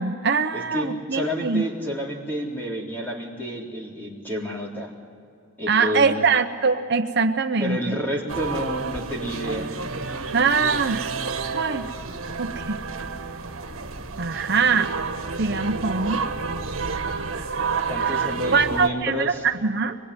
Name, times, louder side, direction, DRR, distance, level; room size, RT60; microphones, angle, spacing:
voice 1, 0.0-1.6 5.7-8.0 10.3-11.1 11.5-11.9 12.4-12.8 14.2-15.0 15.4-16.2 18.0-20.0, right 5 dB, 50° right, 6 dB, 0.9 m, -23 dB
voice 2, 0.5-4.9 5.6-6.2 7.6-9.7 17.9-19.4, equal, 10° left, -3 dB, 3.8 m, -30 dB
sound 1, 8.3-18.9, right 4 dB, 80° right, 1.6 m, -30 dB
24.5 x 21.5 x 9.9 m, 2.5 s
head